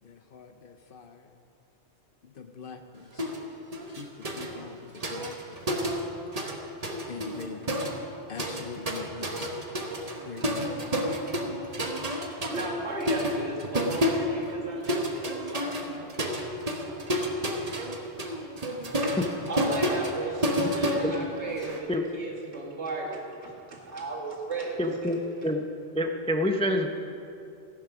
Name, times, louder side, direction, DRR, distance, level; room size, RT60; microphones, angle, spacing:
voice 1, 0.0-1.4 2.2-3.3 3.9-6.0 7.0-7.7 8.3-9.6 10.2-10.7, left 5 dB, 55° left, 7 dB, 0.8 m, -44 dB
sound 1, 3.2-3.4 3.7-6.6 6.8-21.8, equal, 35° right, 1.1 m, -30 dB
voice 2, 12.5-16.6 19.0-19.2 19.5-25.2, right 2 dB, 70° right, -3 dB, 2.3 m, -35 dB
voice 3, 24.8-25.6 25.9-26.9, left 1 dB, 10° left, 4 dB, 0.3 m, -27 dB
15.0 x 8.3 x 6.0 m, 2.7 s
omnidirectional pair, 1.2 m